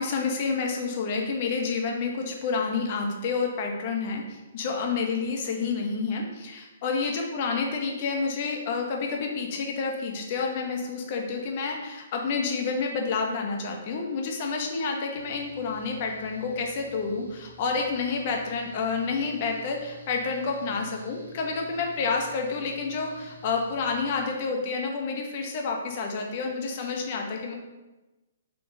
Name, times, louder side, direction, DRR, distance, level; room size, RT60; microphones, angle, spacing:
voice 1, 0.0-27.5, left 4 dB, 40° left, 1 dB, 0.6 m, -29 dB
Mechanical fan, 15.1-24.2, left 1 dB, 85° right, 0.8 m, -51 dB
3.8 x 2.3 x 3.7 m, 1.1 s
figure-of-eight pair, 125°, 0 cm